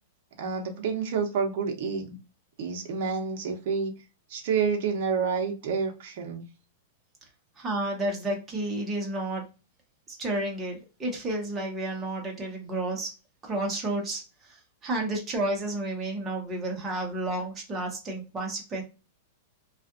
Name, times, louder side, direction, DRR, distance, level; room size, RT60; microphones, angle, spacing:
voice 1, 0.4-2.2 2.6-3.9 4.3-6.4, right 5 dB, 55° right, 2 dB, 0.8 m, -29 dB
voice 2, 7.5-9.5 10.1-13.1 13.4-18.8, right 1 dB, 15° right, 0 dB, 0.9 m, -31 dB
2.4 x 2.4 x 2.4 m, 0.30 s
supercardioid pair, 145°, 0 cm